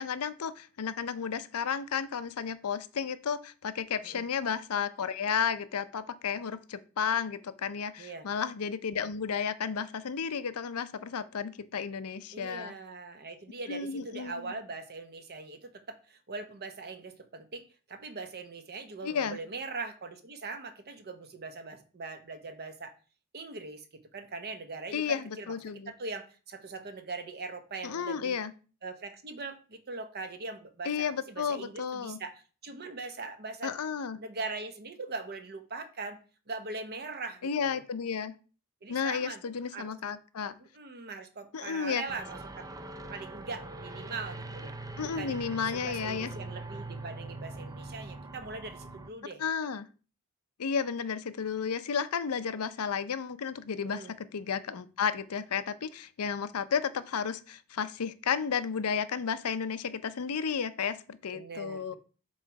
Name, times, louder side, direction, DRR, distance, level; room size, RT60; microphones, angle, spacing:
voice 1, 0.0-12.7 13.7-14.5 19.0-19.4 24.9-25.9 27.8-28.5 30.8-32.2 33.6-34.2 37.4-38.3 38.9-40.5 41.5-42.0 45.0-46.3 49.4-49.9 50.6-62.0, left 6 dB, 85° left, 13 dB, 0.6 m, -33 dB
voice 2, 8.0-8.3 12.3-23.0 23.3-23.9 24.1-25.5 25.9-28.4 28.8-33.7 34.2-36.2 36.5-37.8 38.8-39.4 39.7-39.9 40.6-42.7 43.1-44.7 45.0-49.4 53.8-54.1 61.3-62.0, right 3 dB, 45° right, 8 dB, 0.9 m, -41 dB
sound 1, 42.1-49.1, right 2 dB, 15° right, 0.4 m, -42 dB
7.3 x 3.1 x 4.7 m, 0.36 s
head